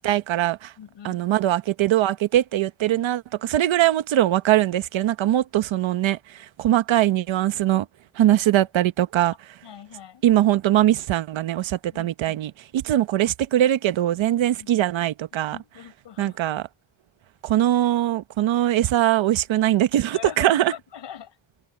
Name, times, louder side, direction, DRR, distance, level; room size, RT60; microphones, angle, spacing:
voice 1, 0.0-0.7 1.0-7.8 8.2-9.3 10.2-15.6 16.2-16.6 17.4-20.7, right 13 dB, 70° right, 1.0 m, -21 dB
voice 2, 0.8-1.2 7.7-7.8 8.3-8.4 9.6-10.2 11.9-12.4 14.6-14.7 15.3-16.4 20.1-21.4, left 9 dB, 60° left, 4.9 m, -41 dB
open air
wide cardioid pair, 160°, 48 cm